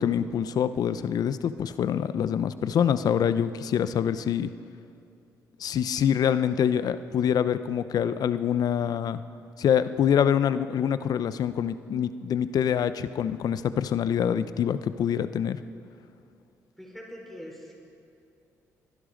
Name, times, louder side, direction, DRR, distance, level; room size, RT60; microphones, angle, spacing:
voice 1, 0.0-4.5 5.6-9.2 9.6-15.6, left 8 dB, 65° left, 13 dB, 0.7 m, -25 dB
voice 2, 16.8-17.7, equal, 5° left, -1 dB, 4.9 m, -43 dB
24.5 x 11.0 x 5.2 m, 2.6 s
supercardioid pair, 65°, 7 cm